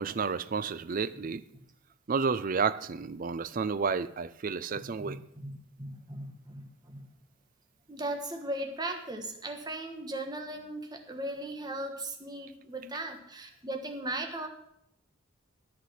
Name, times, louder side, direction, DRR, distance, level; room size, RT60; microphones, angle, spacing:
voice 1, 0.0-1.4 2.1-5.2, right 5 dB, 40° right, 15 dB, 0.4 m, -31 dB
voice 2, 5.0-7.0 7.9-14.5, right 1 dB, 20° right, 4 dB, 1.3 m, -38 dB
10.0 x 8.1 x 5.7 m, 0.75 s
head